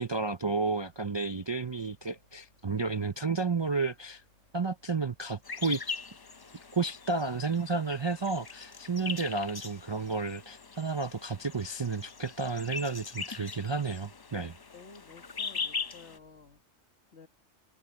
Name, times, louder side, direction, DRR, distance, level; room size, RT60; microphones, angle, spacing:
voice 1, 0.0-4.2 4.5-5.8 6.7-14.5, right 4 dB, 35° right, 0.5 m, -32 dB
sound 1, 0.6-16.6, left 1 dB, 85° left, 6.5 m, -66 dB
sound 2, 5.4-16.2, left 5 dB, 40° left, 0.3 m, -41 dB
voice 2, 9.0-9.3 14.7-16.6 17.1-17.3, left 5 dB, 65° left, 2.0 m, -52 dB
omnidirectional pair, 1.2 m